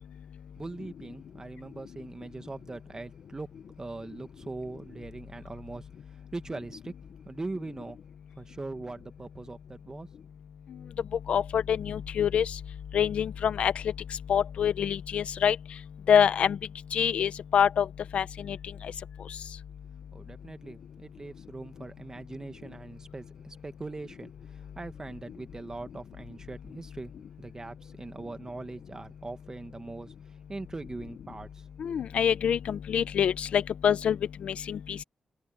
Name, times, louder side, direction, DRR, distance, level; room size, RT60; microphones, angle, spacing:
voice 1, 0.6-3.5 3.8-5.9 6.3-6.9 7.2-8.0 8.4-10.1 20.1-30.1 30.5-31.6, right 3 dB, 30° right, 1.9 m, -41 dB
voice 2, 11.3-12.6 12.9-13.7 14.3-15.6 16.1-16.6 16.9-17.9 18.1-18.6 31.8-35.0, left 8 dB, 80° left, 1.0 m, -25 dB
cardioid pair, 55°, 2 cm